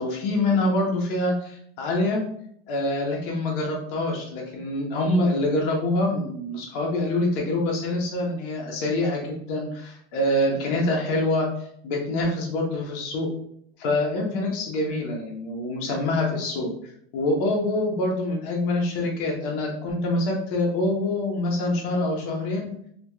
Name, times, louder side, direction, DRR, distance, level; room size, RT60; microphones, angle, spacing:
voice 1, 0.0-2.2 2.7-11.5 11.8-13.3 13.8-16.7 17.1-22.7, left 2 dB, 60° left, -1 dB, 1.0 m, -25 dB
3.0 x 2.8 x 2.3 m, 0.66 s
hypercardioid pair, 100°, 30 cm